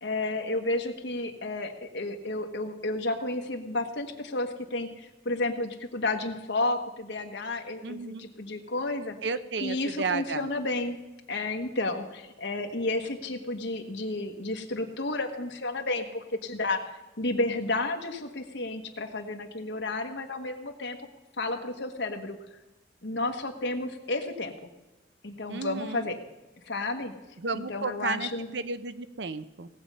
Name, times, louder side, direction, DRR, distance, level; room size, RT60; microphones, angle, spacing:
voice 1, 0.0-9.2 9.6-11.0 11.3-21.0 21.4-22.4 23.0-24.5 25.2-26.2 26.6-27.1 27.5-28.5, left 2 dB, 70° left, 4 dB, 1.3 m, -31 dB
voice 2, 7.8-8.2 9.2-10.5 25.5-26.1 27.4-29.7, right 4 dB, 65° right, 13 dB, 0.6 m, -33 dB
18.0 x 7.4 x 5.5 m, 1.1 s
head